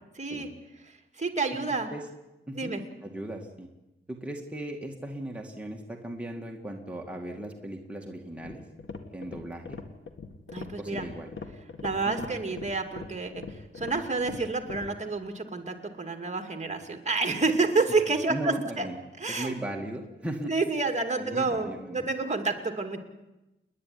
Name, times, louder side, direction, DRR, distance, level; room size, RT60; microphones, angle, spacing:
voice 1, 0.1-0.5 0.8-1.9 2.6-2.8 10.5-11.1 11.8-18.9 19.2-19.5 20.5-23.0, right 3 dB, 35° right, 5 dB, 2.5 m, -29 dB
voice 2, 2.5-2.8 3.0-3.7 4.1-8.6 9.1-9.8 10.8-11.3 12.1-12.3 14.3-14.4 18.3-19.0 19.3-20.5 21.2-22.1, right 1 dB, 5° right, 1 dB, 2.1 m, -37 dB
sound 1, 8.3-14.9, left 4 dB, 65° left, 2.0 m, -41 dB
30.0 x 10.5 x 9.7 m, 0.99 s
wide cardioid pair, 110°, 21 cm